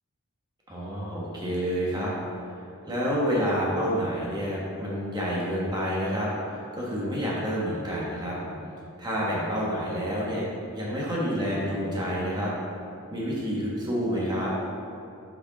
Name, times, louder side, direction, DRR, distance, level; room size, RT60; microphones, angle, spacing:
voice 1, 0.7-2.1 2.9-6.3 6.7-8.4 9.0-10.4 10.7-12.5 13.1-14.5, equal, 20° right, -6 dB, 1.3 m, -28 dB
6.4 x 5.1 x 4.0 m, 2.6 s
head